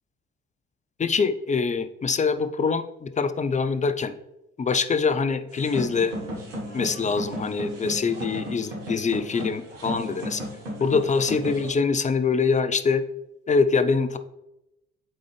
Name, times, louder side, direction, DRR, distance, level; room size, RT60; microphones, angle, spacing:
voice 1, 1.0-4.1 4.6-6.2 6.7-10.4 10.8-13.0 13.5-14.2, left 5 dB, 20° left, 11 dB, 0.5 m, -24 dB
sound 1, 5.5-11.7, equal, 80° right, 1.4 m, -34 dB
8.6 x 3.9 x 3.2 m, 0.88 s
figure-of-eight pair, 45°, 37 cm